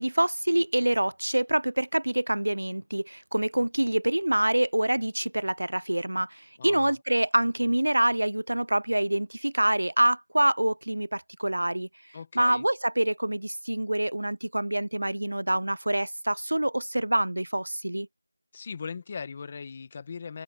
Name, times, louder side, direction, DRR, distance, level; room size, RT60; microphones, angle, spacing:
voice 1, 0.0-11.9 12.4-18.1, right 1 dB, 90° right, 0.6 m, -26 dB
voice 2, 6.6-7.0 12.1-12.6 18.5-20.4, left 5 dB, 15° left, 1.6 m, -39 dB
figure-of-eight pair, 175°, 0 cm